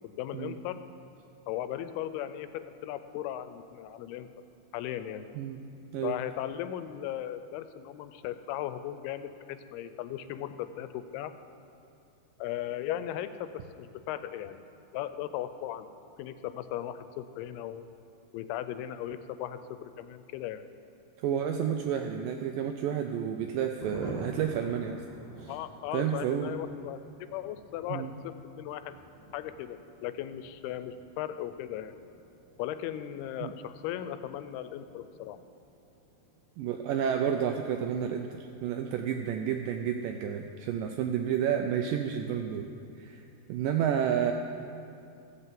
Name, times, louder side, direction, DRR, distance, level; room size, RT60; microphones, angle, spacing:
voice 1, 0.0-0.8 1.5-4.3 4.7-5.3 6.0-11.3 12.4-13.5 13.8-14.6 14.9-15.9 16.2-17.9 18.3-20.6 25.5-28.9 29.3-32.0 32.6-35.4, left 11 dB, 90° left, 11 dB, 2.6 m, -37 dB
voice 2, 21.2-25.0 25.4-25.5 25.9-26.6 27.9-28.1 33.4-33.5 36.6-42.7 43.0-44.3, right 8 dB, 85° right, 5 dB, 2.0 m, -30 dB
Thunder, 23.8-39.9 40.2-40.3 40.6-40.7 41.0-41.4, equal, 30° left, 0.5 m, -50 dB
15.0 x 6.8 x 7.5 m, 2.5 s
omnidirectional pair, 4.5 m